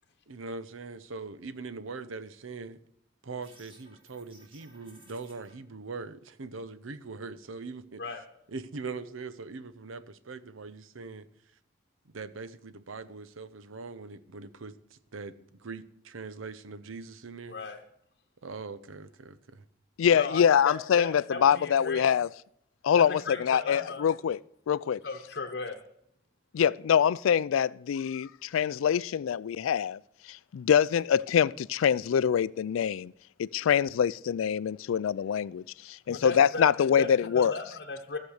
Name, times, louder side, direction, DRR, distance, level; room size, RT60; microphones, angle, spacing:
voice 1, 0.3-2.8 3.2-8.0 8.5-11.3 12.1-17.6 18.4-19.6, right 4 dB, 90° right, 0.8 m, -41 dB
sound 1, 3.3-5.5, right 1 dB, 25° right, 2.2 m, -57 dB
voice 2, 17.5-17.8 20.1-22.1 23.0-24.0 25.0-25.8 36.1-36.7 37.0-38.2, left 3 dB, 50° left, 0.9 m, -37 dB
voice 3, 20.0-22.3 22.8-24.4 24.7-25.0 26.5-30.0 30.3-33.1 33.4-37.5, left 8 dB, 90° left, 0.3 m, -25 dB
14.5 x 6.6 x 6.4 m
head